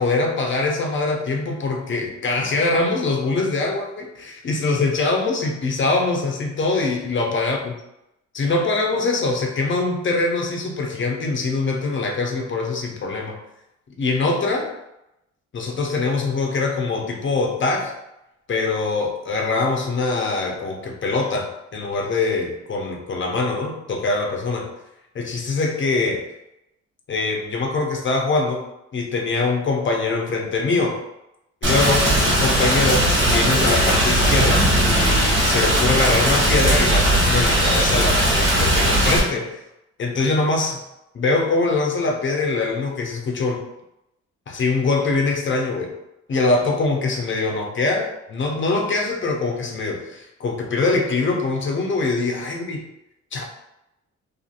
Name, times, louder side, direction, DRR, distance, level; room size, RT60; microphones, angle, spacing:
voice 1, 0.0-7.6 8.3-13.4 14.0-14.7 15.5-17.9 18.5-24.7 25.1-26.2 27.1-28.6 28.9-31.0 31.6-39.5 40.0-40.8 41.1-43.6 44.5-45.9 46.3-52.8 53.3-53.4, left 3 dB, 40° left, 1 dB, 0.7 m, -23 dB
Rain, 31.6-39.2, right 1 dB, 40° right, 1.1 m, -18 dB
2.7 x 2.4 x 2.5 m, 0.87 s
cardioid pair, 90°, 30 cm